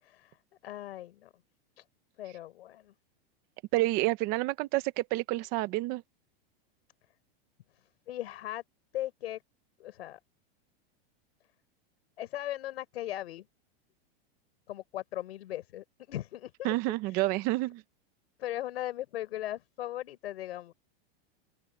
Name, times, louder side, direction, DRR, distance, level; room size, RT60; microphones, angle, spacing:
voice 1, 0.0-0.4 0.6-1.3 1.8-1.9 2.2-2.9 8.1-8.6 8.9-9.4 9.8-10.2 12.2-13.5 14.7-16.7 17.1-17.4 18.4-20.7, left 13 dB, 80° left, 5.6 m, -38 dB
voice 2, 3.7-6.0 16.6-17.8, right 19 dB, 30° right, 0.9 m, -29 dB
open air
supercardioid pair, 175°, 31 cm